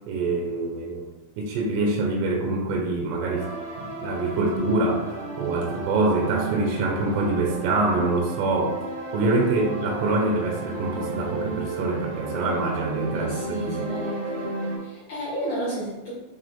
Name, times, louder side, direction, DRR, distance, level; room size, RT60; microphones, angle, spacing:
voice 1, 0.1-1.0 1.4-3.5 3.8-8.8 9.1-13.9, right 2 dB, 85° right, 1 dB, 3.5 m, -25 dB
sound 1, 3.3-14.8, right 2 dB, 45° right, 1.1 m, -33 dB
voice 2, 13.1-14.5 14.8-16.1, right 1 dB, 75° left, -7 dB, 1.7 m, -32 dB
9.1 x 3.4 x 3.6 m, 1.1 s
omnidirectional pair, 5.6 m